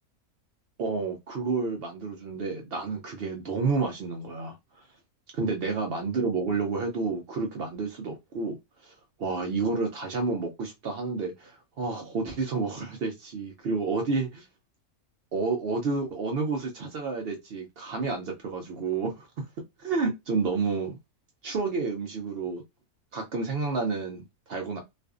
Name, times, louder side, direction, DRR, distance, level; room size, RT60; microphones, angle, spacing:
voice 1, 0.8-4.8 5.4-8.6 8.8-8.9 9.2-14.4 15.3-19.3 19.8-21.0 21.4-22.6 23.1-24.8, right 4 dB, 75° right, 0.5 m, -30 dB
2.5 x 2.4 x 2.3 m
omnidirectional pair, 1.6 m